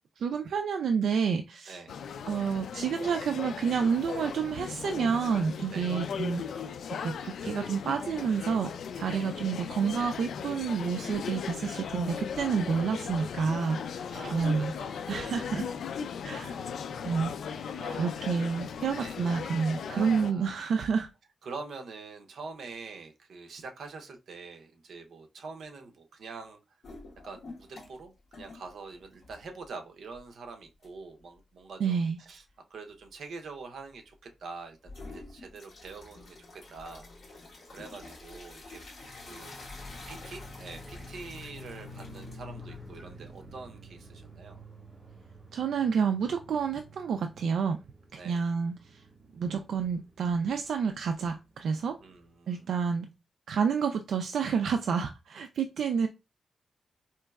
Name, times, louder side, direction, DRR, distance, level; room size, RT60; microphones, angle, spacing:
voice 1, 0.2-1.8 2.3-6.4 7.0-14.7 15.1-15.7 16.2-16.6 17.0-17.3 17.6-21.1 31.8-32.2 45.5-47.8 48.1-49.0 49.3-52.0 52.5-53.1 53.5-56.1, right 6 dB, 90° right, 0.3 m, -29 dB
voice 2, 1.7-2.0 5.7-5.9 9.1-9.3 14.1-15.3 17.8-18.1 19.0-19.2 19.9-20.6 21.4-26.6 27.2-32.4 32.7-39.6 40.1-44.6 48.1-48.4 52.0-52.7, right 4 dB, 70° right, 0.7 m, -45 dB
sound 1, 1.9-20.3, left 7 dB, 90° left, 0.4 m, -37 dB
sound 2, 26.8-28.0 28.3-29.7 30.1-30.2 30.8-30.9 34.8-43.6, left 2 dB, 55° left, 1.4 m, -48 dB
sound 3, 39.0-52.3, left 1 dB, 35° right, 1.8 m, -50 dB
4.4 x 3.0 x 2.3 m
wide cardioid pair, 175°, 0 cm